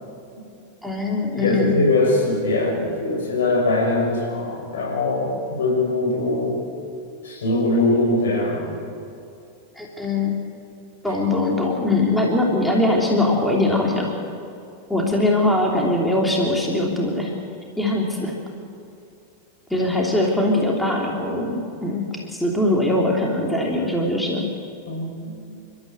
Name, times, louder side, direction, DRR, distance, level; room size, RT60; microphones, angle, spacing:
voice 1, 0.8-1.8 9.7-10.4 11.0-14.1 14.9-17.3 17.8-18.3 19.7-24.5, left 2 dB, 5° left, -1 dB, 3.1 m, -21 dB
voice 2, 1.4-6.5 7.2-8.8 24.8-25.4, left 2 dB, 60° left, -1 dB, 6.8 m, -22 dB
29.5 x 13.5 x 7.8 m, 2.5 s
figure-of-eight pair, 90°, 0 cm